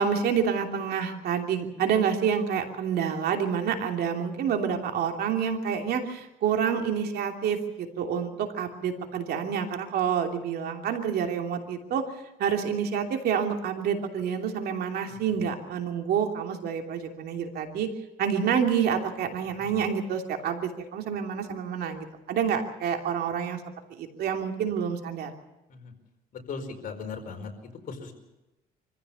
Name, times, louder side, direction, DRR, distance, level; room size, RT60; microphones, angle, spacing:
voice 1, 0.0-12.0 12.4-17.9 18.2-23.6 24.0-25.3, right 7 dB, 70° right, 4 dB, 3.0 m, -28 dB
voice 2, 15.1-15.4 19.6-19.8 25.7-25.9 26.3-28.1, left 4 dB, 55° left, 3 dB, 4.8 m, -39 dB
25.0 x 15.5 x 7.1 m, 0.97 s
cardioid pair, 110°, 17 cm